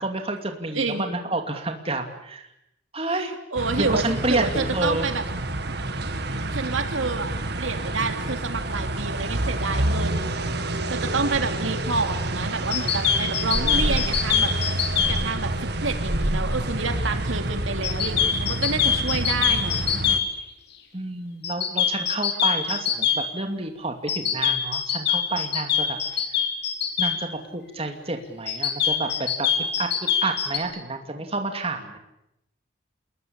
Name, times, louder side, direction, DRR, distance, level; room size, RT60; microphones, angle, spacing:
voice 1, 0.0-2.5 2.9-3.3 3.8-5.1 10.9-11.2 11.8-12.0 20.9-26.4 27.0-32.0, right 2 dB, 30° right, 5 dB, 2.8 m, -30 dB
voice 2, 0.7-1.1 3.5-5.2 6.5-10.3 10.9-14.5 15.1-15.5 15.8-19.9, right 3 dB, 85° right, 6 dB, 2.9 m, -28 dB
sound 1, 3.6-20.2, right 1 dB, 55° right, 2.0 m, -28 dB
sound 2, 12.7-15.1 17.8-20.2 21.4-23.2 24.1-27.1 28.5-30.6, left 9 dB, 55° left, 3.7 m, -23 dB
28.5 x 21.5 x 8.8 m, 0.85 s
head